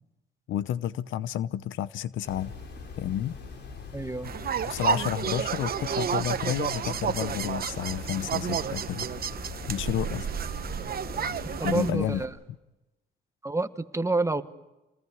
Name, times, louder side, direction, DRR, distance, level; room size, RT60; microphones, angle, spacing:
voice 1, 0.5-2.5 3.0-3.4 4.7-9.1 9.7-10.3 11.6-12.2, left 11 dB, 80° left, 0.8 m, -31 dB
sound 1, 2.2-12.2, left 4 dB, 60° left, 4.3 m, -42 dB
voice 2, 3.9-4.3 11.1-11.3 11.6-12.3 13.4-14.4, right 3 dB, 15° right, 1.4 m, -28 dB
sound 2, 4.2-11.9, right 7 dB, 50° right, 1.1 m, -31 dB
27.5 x 20.0 x 9.6 m
cardioid pair, 90°, 20 cm